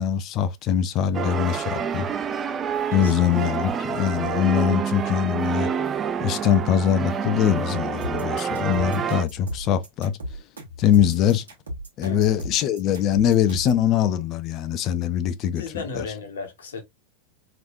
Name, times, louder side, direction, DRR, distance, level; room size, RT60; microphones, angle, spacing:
voice 1, 0.0-2.1 2.9-5.7 6.2-10.2 10.8-11.4 12.0-15.6 15.9-16.0, left 9 dB, 35° left, 0.5 m, -22 dB
sound 1, 1.1-9.2, right 7 dB, 25° right, 0.4 m, -27 dB
sound 2, 8.0-13.8, equal, 70° right, 1.4 m, -36 dB
voice 2, 15.6-16.8, left 4 dB, 65° left, 1.1 m, -34 dB
3.2 x 3.0 x 2.5 m
figure-of-eight pair, 90°, 0 cm